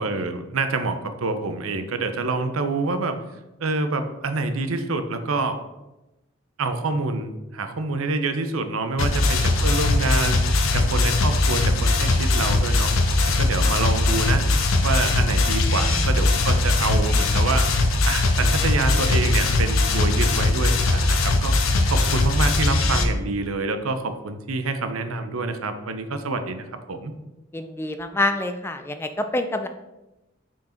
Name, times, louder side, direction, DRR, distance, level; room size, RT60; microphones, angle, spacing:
voice 1, 0.0-3.2 3.6-5.6 6.6-10.4 10.7-12.9 13.4-14.5 14.8-17.7 18.1-21.6 21.9-27.1, right 3 dB, 85° right, 8 dB, 0.7 m, -27 dB
sound 1, 9.0-23.0, left 2 dB, 80° left, 0.8 m, -20 dB
voice 2, 27.5-29.7, left 2 dB, 10° left, 7 dB, 0.4 m, -26 dB
6.1 x 4.6 x 4.4 m, 0.99 s
head